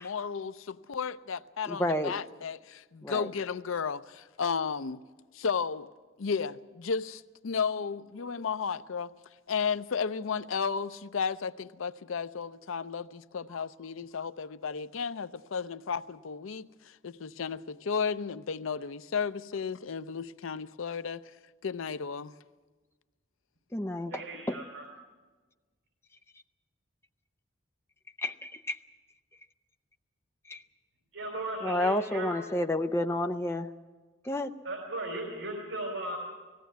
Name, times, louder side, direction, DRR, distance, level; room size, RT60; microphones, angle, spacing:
voice 1, 0.0-5.0 5.3-5.9 6.2-9.1 9.5-21.2 21.6-22.3, left 6 dB, 85° left, 0.5 m, -33 dB
voice 2, 1.7-2.1 3.0-3.3 23.7-24.6 28.2-28.8 30.5-30.6 31.6-33.7 34.2-34.5, left 1 dB, 10° left, 0.5 m, -30 dB
voice 3, 24.1-24.8 31.1-32.3 34.6-36.2, right 2 dB, 85° right, 3.6 m, -36 dB
18.5 x 15.5 x 9.3 m
head